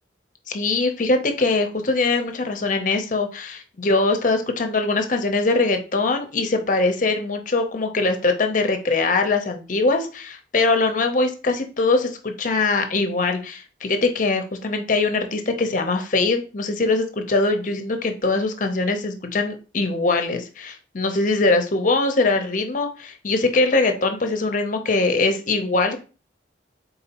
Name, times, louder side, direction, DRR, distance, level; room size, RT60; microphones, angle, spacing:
voice 1, 0.5-26.0, left 3 dB, 45° left, 6 dB, 0.6 m, -22 dB
4.0 x 3.9 x 2.8 m, 0.35 s
head